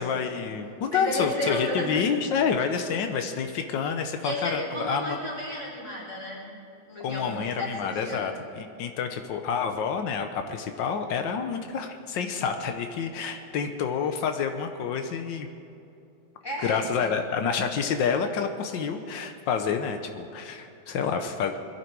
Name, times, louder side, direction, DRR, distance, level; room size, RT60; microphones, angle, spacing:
voice 1, 0.0-5.2 7.0-15.5 16.6-21.6, left 6 dB, 90° left, 6 dB, 1.6 m, -28 dB
voice 2, 0.9-1.9 4.2-6.4 6.9-8.2 13.3-13.4 16.4-17.1, left 1 dB, 15° left, -6 dB, 3.6 m, -33 dB
21.5 x 12.0 x 4.7 m, 2.7 s
omnidirectional pair, 1.9 m